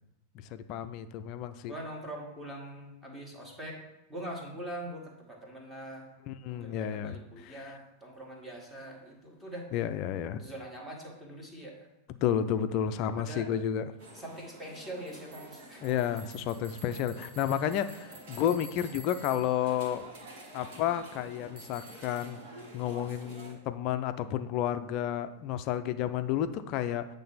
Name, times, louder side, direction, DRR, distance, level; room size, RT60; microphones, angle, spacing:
voice 1, 0.5-1.7 6.3-7.2 7.5-7.6 9.7-10.4 12.2-13.9 15.8-20.0 20.5-22.4 22.7-27.1, left 10 dB, 40° left, 10 dB, 0.5 m, -31 dB
voice 2, 1.7-3.8 4.1-6.1 6.5-9.7 10.4-11.9 13.0-13.5 14.1-15.8, right 1 dB, 10° right, -1 dB, 1.6 m, -43 dB
sound 1, 14.0-23.5, right 2 dB, 50° right, 1.8 m, -48 dB
8.4 x 3.3 x 5.7 m, 0.93 s
figure-of-eight pair, 90°, 0 cm